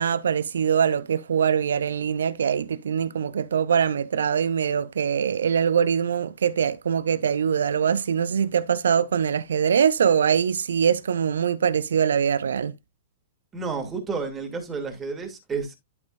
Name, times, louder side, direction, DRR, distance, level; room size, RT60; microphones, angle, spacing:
voice 1, 0.0-12.7, right 7 dB, 70° right, 0.5 m, -23 dB
voice 2, 13.5-15.7, right 4 dB, 20° right, 2.7 m, -31 dB
12.0 x 5.2 x 2.5 m
figure-of-eight pair, 105°, 0 cm